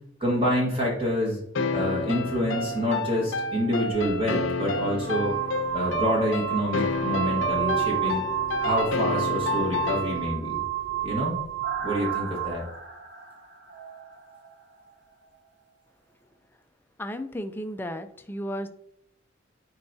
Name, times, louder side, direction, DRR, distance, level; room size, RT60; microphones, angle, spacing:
voice 1, 0.2-1.4 1.7-5.3 5.7-8.3 8.6-10.6 11.0-11.4 11.8-12.6, equal, 25° right, -4 dB, 1.5 m, -27 dB
sound 1, 1.5-10.4, left 3 dB, 75° left, 0.6 m, -30 dB
sound 2, 3.9-4.1 4.9-12.6, right 15 dB, 55° right, 0.4 m, -30 dB
sound 3, 7.5-15.4 15.7-15.8, equal, 75° right, 2.2 m, -40 dB
voice 2, 17.0-18.7, equal, 10° left, 7 dB, 0.4 m, -34 dB
9.6 x 4.6 x 2.7 m, 0.73 s
head